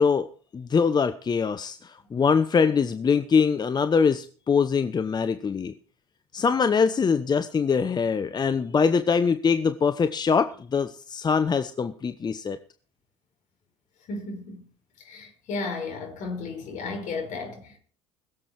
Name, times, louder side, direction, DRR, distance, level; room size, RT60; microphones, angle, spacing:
voice 1, 0.0-5.7 6.3-12.6, left 5 dB, 25° left, 1.0 m, -23 dB
voice 2, 14.1-14.7 15.0-17.8, left 3 dB, 55° left, 5.4 m, -34 dB
21.0 x 7.7 x 4.7 m
hypercardioid pair, 65°, 15 cm